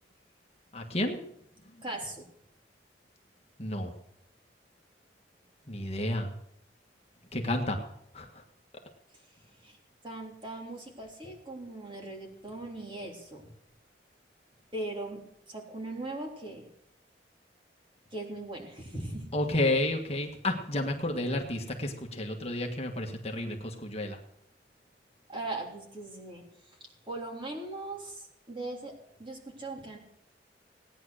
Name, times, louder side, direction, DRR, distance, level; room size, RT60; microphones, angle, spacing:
voice 1, 0.7-1.2 3.6-3.9 5.7-6.3 7.3-7.8 8.1-8.4 19.3-24.2, left 1 dB, 35° left, 2 dB, 1.6 m, -31 dB
voice 2, 1.8-2.3 9.1-9.2 9.6-9.8 10.0-13.4 14.7-15.2 15.5-16.6 18.1-19.3 25.3-26.8 27.1-30.0, right 2 dB, 30° right, 0 dB, 3.5 m, -39 dB
18.0 x 10.0 x 6.5 m, 0.74 s
head